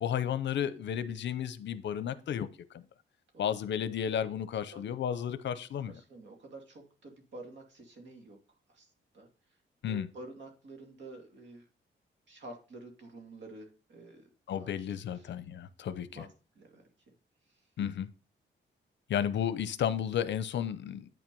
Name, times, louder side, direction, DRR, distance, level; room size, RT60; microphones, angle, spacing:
voice 1, 0.0-2.5 2.7-2.8 3.4-5.9 9.8-10.1 14.5-16.3 17.8-18.1 19.1-21.1, left 9 dB, 65° left, 0.7 m, -33 dB
voice 2, 5.8-8.4 8.7-9.3 9.9-11.6 12.3-14.3 14.6-15.3 16.1-16.9 17.5-17.6, right 2 dB, 65° right, 2.5 m, -49 dB
9.1 x 6.0 x 5.3 m
wide cardioid pair, 170°, 20 cm